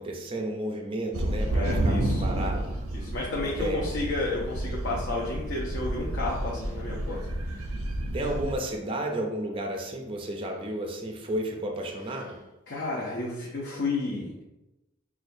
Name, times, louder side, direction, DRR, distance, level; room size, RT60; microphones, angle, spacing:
voice 1, 0.0-2.7 3.6-3.8 8.1-12.4, right 1 dB, 25° right, 2 dB, 0.4 m, -32 dB
sound 1, 1.1-8.5, right 1 dB, 85° right, 0.6 m, -30 dB
voice 2, 1.5-2.2 2.9-7.2 7.5-7.7 12.7-14.4, left 2 dB, 55° left, -4 dB, 0.7 m, -32 dB
5.9 x 2.2 x 2.6 m, 0.99 s
head